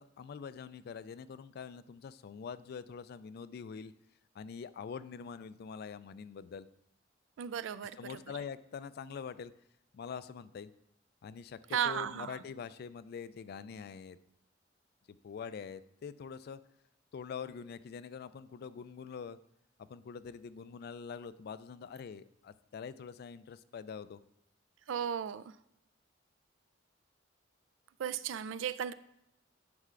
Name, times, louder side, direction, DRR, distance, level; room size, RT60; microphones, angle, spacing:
voice 1, 0.0-3.9 4.3-6.7 7.9-9.5 9.9-10.7 11.2-14.2 15.2-16.6 17.1-19.4 19.8-24.2, left 6 dB, 55° left, 15 dB, 0.3 m, -44 dB
voice 2, 7.4-7.9 11.7-12.4 24.9-25.4 28.0-28.9, right 8 dB, 75° right, 14 dB, 0.3 m, -34 dB
9.5 x 5.6 x 2.5 m, 0.80 s
head